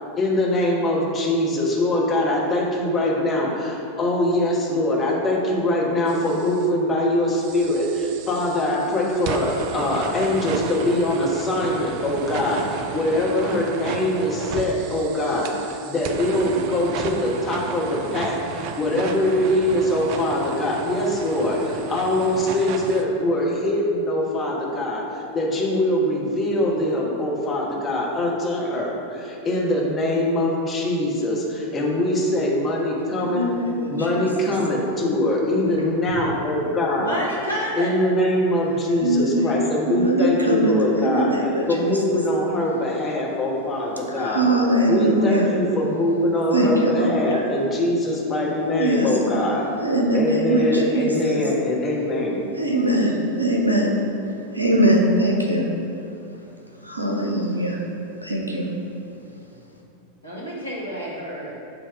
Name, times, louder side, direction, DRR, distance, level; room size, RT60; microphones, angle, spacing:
voice 1, 0.2-15.5 15.9-25.0 25.3-33.5 33.9-37.4 37.8-41.3 41.7-44.5 44.9-49.6 50.1-52.4, left 1 dB, 25° left, -3 dB, 1.2 m, -23 dB
sound 1, 6.1-6.7 7.3-23.0, right 6 dB, 45° right, 0.4 m, -33 dB
voice 2, 33.2-34.5 39.0-41.9 44.1-45.5 46.5-47.4 48.7-49.5 49.8-51.4 52.6-53.9 54.5-55.7 56.8-57.8 58.2-58.7, right 1 dB, 90° right, 0 dB, 0.7 m, -22 dB
voice 3, 37.0-37.9 60.2-61.6, equal, 90° left, -6 dB, 1.3 m, -29 dB
7.0 x 2.9 x 4.9 m, 2.8 s
figure-of-eight pair, 90°, 0 cm